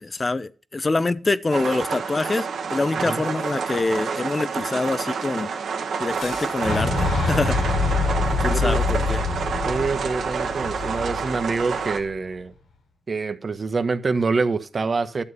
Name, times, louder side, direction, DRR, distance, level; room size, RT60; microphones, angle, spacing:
voice 1, 0.0-5.5 6.0-7.6 8.4-9.2, left 3 dB, 40° left, 0.8 m, -25 dB
sound 1, 1.5-12.0, right 5 dB, 85° right, 2.1 m, -28 dB
Boom, 6.2-12.0, left 4 dB, 85° left, 4.6 m, -26 dB
voice 2, 9.6-12.5 13.1-15.2, right 4 dB, 55° right, 1.4 m, -25 dB
12.0 x 7.9 x 6.9 m
cardioid pair, 50°, 0 cm